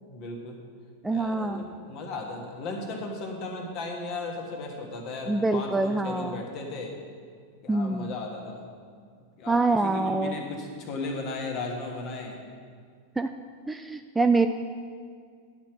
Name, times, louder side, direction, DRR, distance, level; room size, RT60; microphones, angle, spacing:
voice 1, 0.1-0.6 1.1-6.9 7.6-8.7 9.4-12.4, left 3 dB, 40° left, 2 dB, 1.5 m, -36 dB
voice 2, 1.0-1.6 5.3-6.4 7.7-8.1 9.5-10.3 13.2-13.3 13.7-14.5, right 3 dB, 10° right, 7 dB, 0.3 m, -25 dB
10.5 x 4.4 x 7.6 m, 2.1 s
figure-of-eight pair, 90°, 0 cm